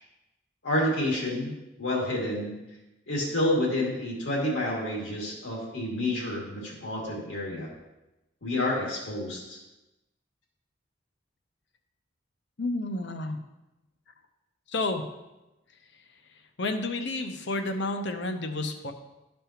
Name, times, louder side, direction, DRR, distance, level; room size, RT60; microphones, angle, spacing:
voice 1, 0.6-1.5 1.8-2.5 3.1-7.7 8.4-9.6, left 1 dB, 85° left, -3 dB, 2.3 m, -29 dB
voice 2, 12.6-13.4 14.7-15.0 16.6-18.9, left 2 dB, 65° left, 6 dB, 0.8 m, -30 dB
12.5 x 5.3 x 2.9 m, 0.99 s
head